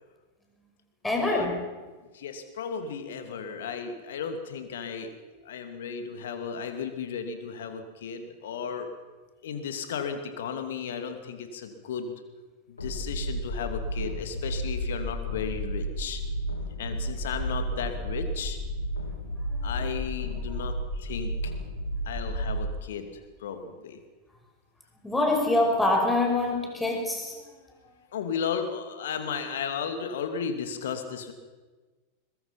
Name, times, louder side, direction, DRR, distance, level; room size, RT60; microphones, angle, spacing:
voice 1, 1.0-1.7 19.5-19.8 20.5-20.6 25.0-27.6, left 2 dB, 5° left, 1 dB, 5.5 m, -26 dB
voice 2, 2.1-5.1 5.4-8.9 9.4-12.2 12.7-16.2 16.8-18.6 19.6-21.5 22.1-23.1 23.4-24.0 28.1-31.3, left 6 dB, 60° left, 7 dB, 2.5 m, -34 dB
sound 1, 12.8-22.7, equal, 80° left, 3.5 m, -32 dB
21.5 x 21.5 x 5.8 m, 1.3 s
figure-of-eight pair, 90°, 0 cm